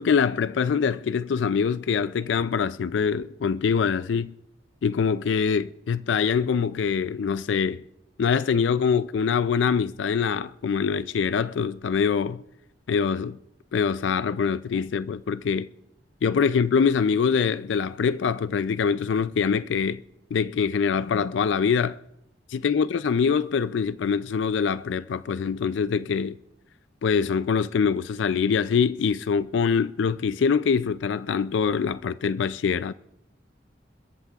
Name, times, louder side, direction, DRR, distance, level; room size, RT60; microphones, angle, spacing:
voice 1, 0.0-4.3 4.8-7.8 8.2-12.4 12.9-13.4 13.7-15.7 16.2-20.0 20.3-22.0 22.5-26.4 27.0-32.9, left 6 dB, 80° left, 0.4 m, -24 dB
27.5 x 13.5 x 2.4 m
head